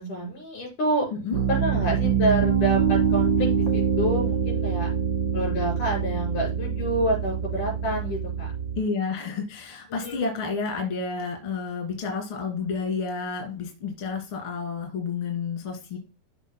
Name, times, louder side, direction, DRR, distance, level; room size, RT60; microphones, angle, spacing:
voice 1, 0.0-1.1 1.5-4.9 5.3-8.5 9.9-10.2, right 1 dB, 85° left, -1 dB, 6.2 m, -28 dB
Piano, 1.3-8.8, right 7 dB, 50° right, 1.5 m, -25 dB
voice 2, 8.8-16.0, left 5 dB, 45° left, 1 dB, 3.0 m, -30 dB
13.5 x 5.9 x 2.2 m, 0.30 s
omnidirectional pair, 3.5 m